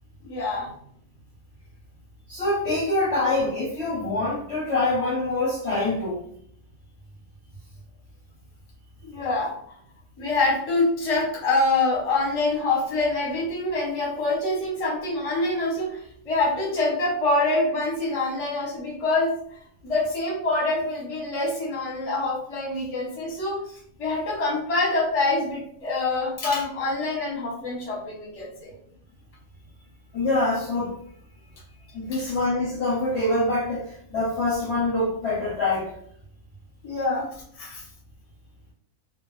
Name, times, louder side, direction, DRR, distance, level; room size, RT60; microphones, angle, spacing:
voice 1, 0.2-0.7 9.0-9.5 10.2-19.3 19.8-23.6 24.0-28.7 32.1-32.3 36.8-37.3 37.6-37.8, left 2 dB, 30° left, -3 dB, 0.7 m, -25 dB
voice 2, 2.3-6.2 30.1-31.0 31.9-35.9, left 2 dB, 60° left, -5 dB, 0.8 m, -25 dB
2.4 x 2.0 x 3.0 m, 0.66 s
omnidirectional pair, 1.5 m